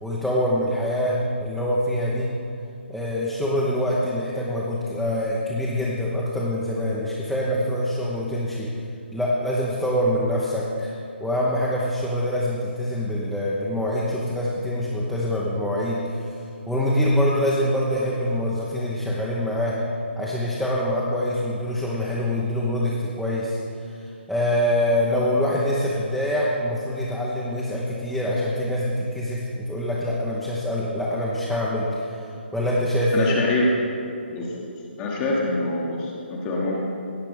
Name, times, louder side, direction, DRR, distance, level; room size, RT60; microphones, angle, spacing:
voice 1, 0.0-2.4 2.9-8.7 9.1-10.9 11.2-16.3 16.7-19.8 20.2-32.1 32.5-33.3, left 1 dB, ahead, -7 dB, 0.9 m, -25 dB
voice 2, 33.1-33.7 34.3-36.8, left 2 dB, 20° left, -3 dB, 1.2 m, -25 dB
16.5 x 5.8 x 5.1 m, 2.7 s
figure-of-eight pair, 140°, 6 cm